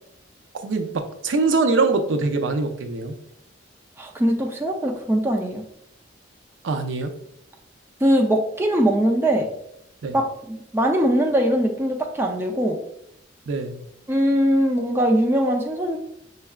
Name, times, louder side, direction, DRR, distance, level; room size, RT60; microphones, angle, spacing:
voice 1, 0.6-3.2 6.6-7.1 10.0-10.2 13.5-13.8, right 3 dB, 80° right, 7 dB, 0.5 m, -23 dB
voice 2, 4.0-5.6 8.0-9.5 10.1-12.8 14.1-16.0, equal, 10° right, 1 dB, 0.5 m, -21 dB
4.6 x 3.3 x 2.3 m, 0.74 s
head